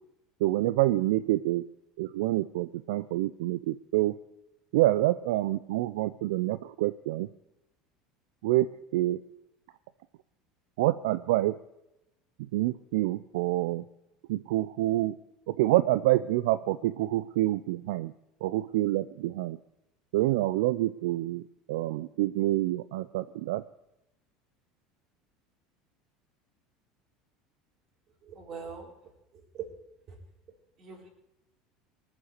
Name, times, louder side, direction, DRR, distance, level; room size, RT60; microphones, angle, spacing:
voice 1, 0.4-1.6 2.0-4.1 4.7-7.3 8.4-8.7 8.9-9.2 10.8-11.6 12.5-13.9 14.3-15.1 15.5-18.1 18.4-19.6 20.1-21.4 21.7-23.6, right 16 dB, 75° right, 14 dB, 0.5 m, -27 dB
voice 2, 28.2-28.9 29.3-29.6 30.1-30.2 30.8-31.1, right 7 dB, 50° right, 1 dB, 4.7 m, -42 dB
19.5 x 7.3 x 8.1 m, 0.89 s
hypercardioid pair, 90°, 0 cm